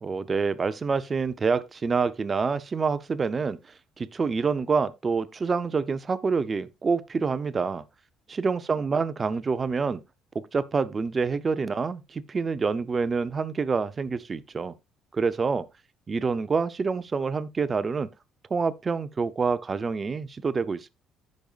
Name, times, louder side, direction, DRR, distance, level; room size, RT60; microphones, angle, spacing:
voice 1, 0.0-3.6 4.0-7.8 8.3-10.0 10.3-14.7 15.1-15.7 16.1-18.1 18.5-20.9, right 5 dB, 25° right, 0.6 m, -27 dB
15.0 x 5.3 x 2.4 m
cardioid pair, 125°, 0 cm